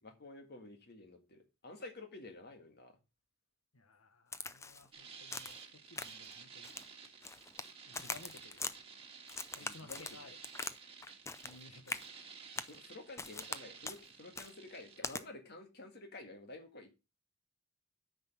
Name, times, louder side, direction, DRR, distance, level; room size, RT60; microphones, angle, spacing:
voice 1, 0.0-3.0 9.6-10.1 12.7-16.9, left 2 dB, 50° left, 1.8 m, -51 dB
voice 2, 3.7-6.7 7.8-8.8 9.5-10.4 11.0-11.1 11.4-12.4, left 2 dB, 70° left, 1.2 m, -57 dB
Crack, 4.3-4.9 5.3-5.6 6.0-6.3 6.6-7.7 7.9-8.7 9.3-10.8 11.0-11.6 11.9-12.1 12.6-12.8 13.2-13.6 13.8-14.0 14.4-14.5 15.0-15.2, left 4 dB, 15° left, 0.5 m, -42 dB
sound 1, 4.9-15.0, right 6 dB, 25° right, 1.7 m, -53 dB
9.5 x 5.4 x 5.4 m
head